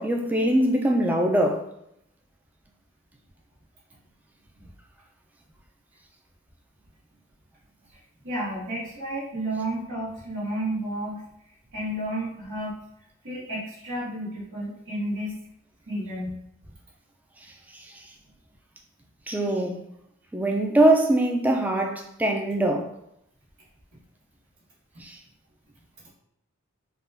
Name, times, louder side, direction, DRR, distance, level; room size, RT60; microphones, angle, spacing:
voice 1, 0.0-1.7 17.7-18.0 19.3-19.8 20.3-22.9 25.0-25.2, right 1 dB, 10° right, 2 dB, 0.3 m, -23 dB
voice 2, 8.2-11.2 11.7-12.8 13.2-15.3 15.9-16.4, right 1 dB, 80° right, -12 dB, 1.2 m, -31 dB
3.7 x 2.2 x 3.3 m, 0.77 s
head